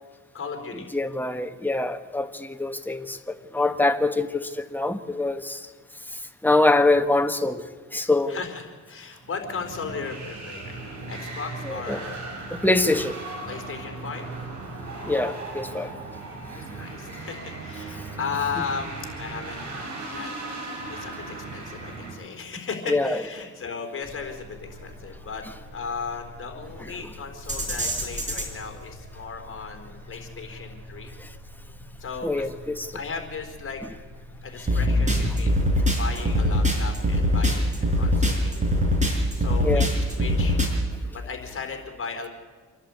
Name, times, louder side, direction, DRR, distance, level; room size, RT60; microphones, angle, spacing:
voice 1, 0.3-0.9 8.3-12.3 13.5-14.3 16.5-19.7 20.1-20.6 20.9-25.4 25.7-31.1 32.0-32.5 32.9-33.8 34.4-35.6 35.9-38.7 39.3-40.6 41.0-42.3, left 5 dB, 45° left, 4.1 m, -36 dB
voice 2, 0.9-5.7 6.1-7.6 7.9-8.4 11.6-12.0 12.5-13.2 15.0-16.0 22.9-23.2 26.8-26.9 31.2-31.3 32.2-32.9 39.6-39.9, left 2 dB, 5° left, 1.3 m, -24 dB
sound 1, 9.2-22.1, right 3 dB, 65° right, 7.2 m, -37 dB
sound 2, 24.1-40.7, equal, 25° right, 5.4 m, -24 dB
27.0 x 11.5 x 8.7 m
cardioid pair, 90°, 30 cm